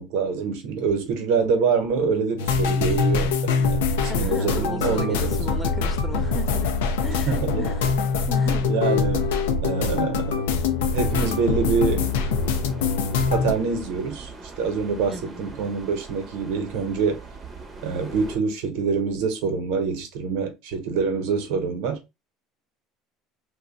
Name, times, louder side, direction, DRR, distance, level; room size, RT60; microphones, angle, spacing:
voice 1, 0.0-5.4 7.3-7.6 8.7-9.3 9.6-10.6 10.9-12.1 13.3-14.3 14.6-17.2 17.8-22.0, right 5 dB, 75° right, 0.9 m, -25 dB
sound 1, 2.4-13.5, left 5 dB, 90° left, 0.5 m, -23 dB
voice 2, 4.1-6.7 7.0-7.9 8.3-8.7 15.1-15.7, left 1 dB, ahead, 0.9 m, -35 dB
sound 2, 10.8-18.4, right 3 dB, 30° right, 0.8 m, -41 dB
2.7 x 2.2 x 3.8 m
supercardioid pair, 90°, 0 cm